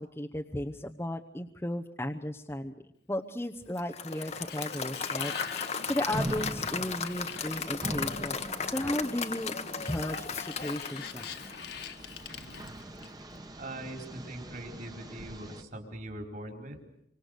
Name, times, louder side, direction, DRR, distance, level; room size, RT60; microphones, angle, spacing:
voice 1, 0.0-2.7 3.1-5.6 5.8-11.4, left 1 dB, 15° left, 2 dB, 0.9 m, -35 dB
Applause / Crowd, 3.8-11.9, left 5 dB, 35° left, 1.3 m, -36 dB
Sliding door, 3.9-8.5 9.7-13.4, left 7 dB, 60° left, 2.0 m, -44 dB
sound 1, 6.1-15.6, right 1 dB, 20° right, 1.6 m, -42 dB
voice 2, 13.6-16.8, right 1 dB, 50° right, 4 dB, 4.6 m, -41 dB
26.5 x 25.0 x 6.7 m, 0.72 s
head